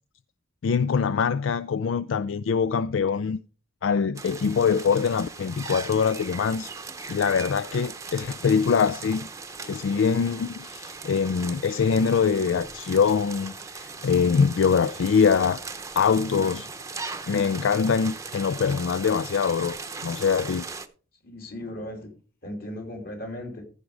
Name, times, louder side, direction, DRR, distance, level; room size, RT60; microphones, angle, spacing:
voice 1, 0.6-3.4 3.8-6.7 7.1-9.3 9.6-15.6 16.0-16.7 17.3-19.8 20.0-20.6, left 6 dB, 85° left, 0.4 m, -23 dB
sound 1, 4.2-20.9, right 4 dB, 15° right, 0.7 m, -39 dB
voice 2, 21.2-22.1 22.4-23.7, left 1 dB, 55° left, 2.9 m, -36 dB
15.0 x 5.2 x 4.8 m
head